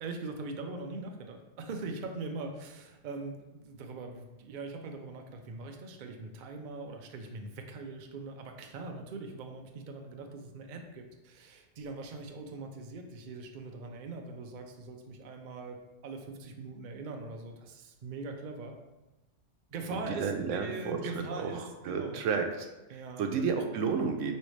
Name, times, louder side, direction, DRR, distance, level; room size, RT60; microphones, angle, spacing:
voice 1, 0.0-15.8 16.0-18.8 19.7-22.2 22.9-23.5, right 3 dB, 55° right, 4 dB, 0.6 m, -41 dB
voice 2, 19.9-24.4, right 5 dB, 85° right, 5 dB, 1.0 m, -32 dB
5.2 x 3.2 x 3.1 m, 1.0 s
omnidirectional pair, 1.3 m